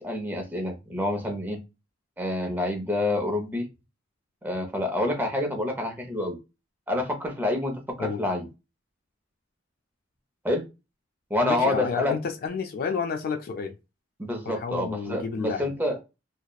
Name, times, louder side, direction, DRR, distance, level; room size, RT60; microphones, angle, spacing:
voice 1, 0.0-1.6 2.2-3.7 4.4-6.4 6.9-8.5 10.4-10.6 11.3-12.1 14.2-16.0, left 1 dB, 10° right, 0.5 m, -27 dB
voice 2, 11.4-13.8 14.5-15.7, left 5 dB, 50° left, 0.3 m, -30 dB
2.7 x 2.0 x 2.2 m
head